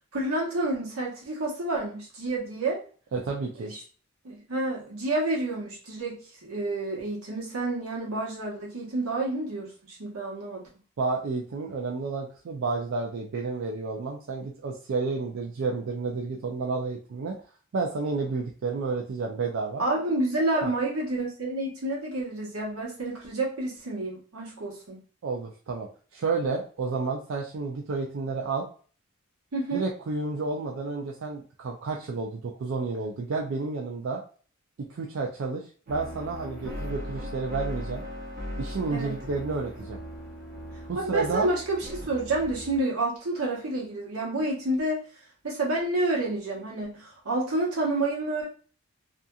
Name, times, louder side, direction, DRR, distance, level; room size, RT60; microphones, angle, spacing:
voice 1, 0.1-2.8 3.6-3.8 4.2-10.6 19.8-25.0 29.5-29.8 38.9-39.2 40.9-45.0 45.4-48.5, right 2 dB, 80° right, -3 dB, 1.0 m, -29 dB
voice 2, 3.1-3.7 11.0-17.4 17.7-19.8 20.6-20.7 25.2-28.6 29.7-34.2 34.9-38.0 38.6-40.0 40.9-41.5, right 4 dB, 60° right, 0 dB, 0.4 m, -31 dB
sound 1, 35.9-42.8, equal, 40° right, 0.8 m, -38 dB
2.7 x 2.4 x 2.3 m, 0.40 s
head